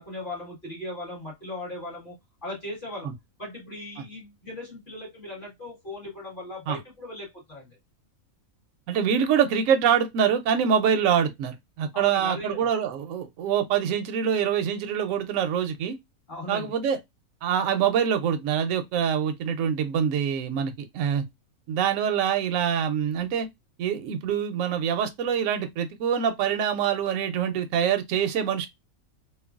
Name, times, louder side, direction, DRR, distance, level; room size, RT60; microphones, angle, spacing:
voice 1, 0.0-2.2 2.4-3.1 3.4-7.8 11.9-12.7 16.3-16.7, left 1 dB, 40° left, 1.5 m, -38 dB
voice 2, 8.9-16.0 16.5-17.0 17.4-21.2 21.7-23.5 23.8-28.7, right 8 dB, 70° right, 0.9 m, -25 dB
3.1 x 2.3 x 2.3 m
omnidirectional pair, 1.5 m